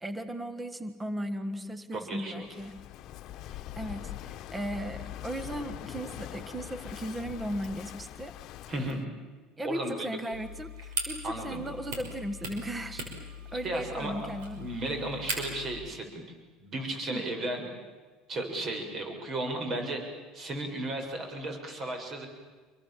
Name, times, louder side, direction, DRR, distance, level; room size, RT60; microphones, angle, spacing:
voice 1, 0.0-2.8 3.5-8.3 9.6-13.1 13.5-14.7 17.1-17.2, right 1 dB, 15° right, 11 dB, 1.5 m, -36 dB
voice 2, 1.9-2.5 8.7-9.0 9.6-10.1 11.2-11.6 13.6-14.3 14.6-16.2 16.6-17.6 18.3-20.0 20.3-22.3, right 1 dB, 40° right, 4 dB, 7.2 m, -34 dB
Walk footsteps / Wind / Waves surf, 2.4-9.1, left 13 dB, 55° left, 1.1 m, -42 dB
sound 1, 10.3-15.7, right 1 dB, 75° right, 6.2 m, -39 dB
28.0 x 24.0 x 7.5 m, 1.4 s
supercardioid pair, 95°, 0 cm